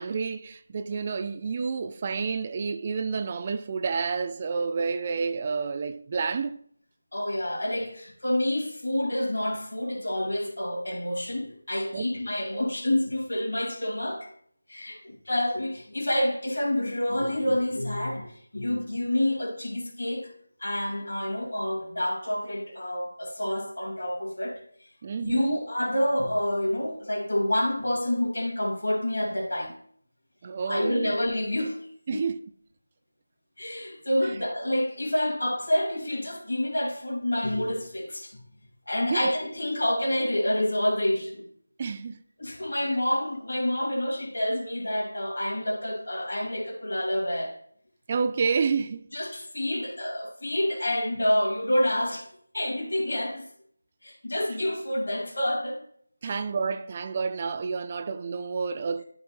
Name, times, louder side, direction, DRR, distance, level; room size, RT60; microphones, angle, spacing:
voice 1, 0.0-6.6 11.9-12.1 25.0-25.6 30.4-31.1 32.1-32.4 39.1-39.3 41.8-42.2 48.1-49.0 56.2-59.0, right 5 dB, 25° right, 0.3 m, -29 dB
voice 2, 7.1-14.3 14.7-20.3 20.6-24.9 25.2-29.8 30.7-31.8 32.1-32.3 33.6-38.4 38.9-41.5 42.4-47.5 49.1-52.3 52.5-53.4 54.0-55.8 56.2-56.4, left 1 dB, 65° left, 2.5 m, -28 dB
11.5 x 4.1 x 3.1 m
figure-of-eight pair, 165°, 0 cm